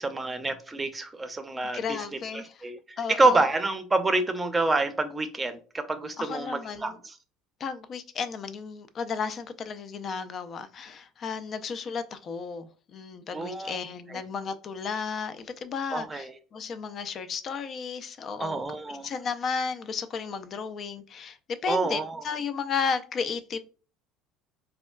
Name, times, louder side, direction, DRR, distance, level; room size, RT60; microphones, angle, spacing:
voice 1, 0.0-2.0 2.3-7.1 13.3-13.8 14.1-14.2 15.9-16.3 18.4-19.1 21.7-22.2, right 2 dB, 20° right, 0.6 m, -27 dB
voice 2, 1.7-2.7 3.0-3.4 6.2-7.0 7.6-18.6 18.9-23.6, left 5 dB, 45° left, 0.4 m, -33 dB
4.2 x 2.3 x 2.2 m
hypercardioid pair, 70°, 0 cm